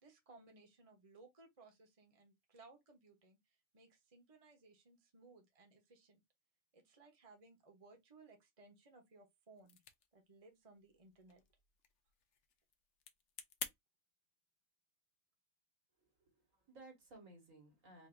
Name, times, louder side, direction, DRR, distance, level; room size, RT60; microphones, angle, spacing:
voice 1, 0.0-6.2 6.7-9.8 10.1-11.4, right 3 dB, 25° right, 1.1 m, -63 dB
sound 1, 9.6-13.7, left 7 dB, 60° left, 1.0 m, -52 dB
voice 2, 16.0-18.1, right 2 dB, 70° right, 2.3 m, -59 dB
4.8 x 2.7 x 2.7 m
omnidirectional pair, 1.4 m